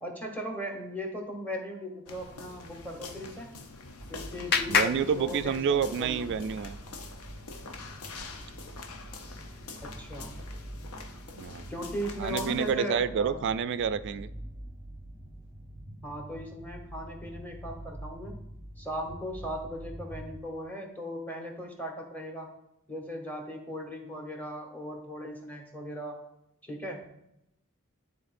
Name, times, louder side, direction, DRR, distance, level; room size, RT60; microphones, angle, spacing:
voice 1, 0.0-3.6 4.1-6.3 9.8-10.3 11.7-13.4 16.0-18.4 18.8-22.5 22.9-26.2 26.6-27.0, equal, 10° left, 1 dB, 1.1 m, -38 dB
sound 1, 2.1-12.7, left 3 dB, 90° left, 0.7 m, -45 dB
Clapping, 3.4-6.0, left 5 dB, 45° left, 0.4 m, -31 dB
sound 2, 4.0-20.4, right 1 dB, 20° right, 0.8 m, -45 dB
voice 2, 4.7-6.8 11.4-11.7 12.2-14.3, right 7 dB, 55° right, 13 dB, 0.3 m, -29 dB
11.5 x 4.0 x 2.5 m, 0.84 s
head